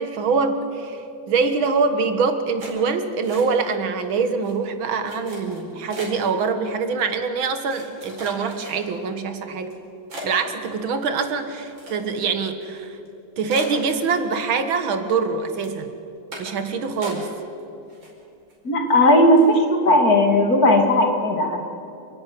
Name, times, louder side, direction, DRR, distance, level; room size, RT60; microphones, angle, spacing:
voice 1, 0.0-9.7 10.2-13.0 13.4-15.9 16.4-17.3, right 4 dB, 90° right, 8 dB, 2.3 m, -24 dB
sound 1, 2.6-3.8 4.1-4.5 5.0-6.3 7.0-7.1 7.7-9.1 9.6-9.7 10.1-12.3 12.6-12.7 13.1-13.2 13.5-14.6 14.9-15.3 15.6-15.8 16.3-16.6 17.0-17.6 17.9-18.5 18.9-19.0 19.3-19.6, right 1 dB, 70° right, 5.7 m, -39 dB
voice 2, 18.6-21.6, left 1 dB, 50° left, 3 dB, 2.9 m, -16 dB
29.5 x 11.0 x 9.6 m, 2.7 s
omnidirectional pair, 2.1 m